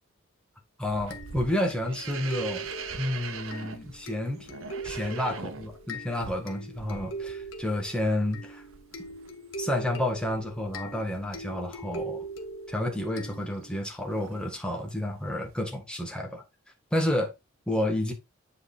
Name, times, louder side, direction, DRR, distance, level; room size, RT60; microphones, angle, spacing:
voice 1, 0.8-2.7 2.9-4.5 4.8-8.6 9.6-12.2 12.7-16.4 16.9-17.3 17.7-18.1, left 1 dB, 5° left, 1.8 m, -30 dB
sound 1, 0.9-13.8 14.1-14.6 15.0-15.6, right 5 dB, 85° right, 0.9 m, -44 dB
sound 2, 1.1-13.9, right 2 dB, 75° left, 1.3 m, -41 dB
8.1 x 4.8 x 3.9 m
head